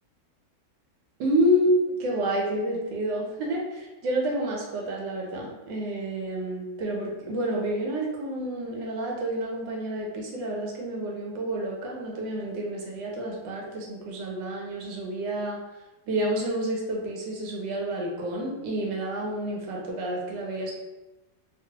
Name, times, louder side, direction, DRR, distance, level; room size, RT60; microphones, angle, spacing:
voice 1, 1.2-15.6 16.1-20.7, right 1 dB, 90° right, -1 dB, 1.4 m, -29 dB
2.9 x 2.4 x 2.7 m, 1.0 s
omnidirectional pair, 1.9 m